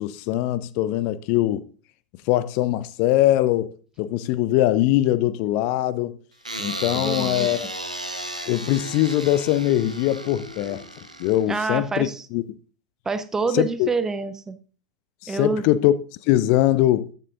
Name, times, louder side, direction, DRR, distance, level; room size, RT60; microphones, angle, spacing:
voice 1, 0.0-1.6 2.3-6.2 6.6-7.7 8.5-10.8 11.2-12.4 13.5-13.9 15.2-15.9 16.2-17.1, left 14 dB, 45° left, 0.5 m, -22 dB
sound 1, 6.4-11.8, right 1 dB, 90° right, 1.3 m, -34 dB
voice 2, 6.9-7.5 11.5-12.3 13.1-14.6 15.3-15.6, right 4 dB, 15° right, 0.7 m, -27 dB
14.0 x 9.2 x 2.6 m
figure-of-eight pair, 90°, 4 cm